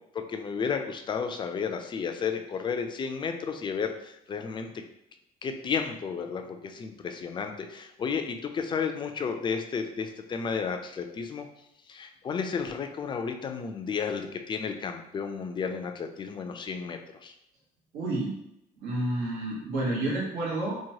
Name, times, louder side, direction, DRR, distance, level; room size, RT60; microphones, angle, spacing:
voice 1, 0.1-4.7 5.4-11.5 11.9-17.3, left 6 dB, 30° left, 5 dB, 0.3 m, -32 dB
voice 2, 17.9-18.4 18.8-20.8, right 2 dB, 85° right, -5 dB, 1.0 m, -30 dB
2.9 x 2.1 x 2.7 m, 0.81 s
cardioid pair, 110°, 17 cm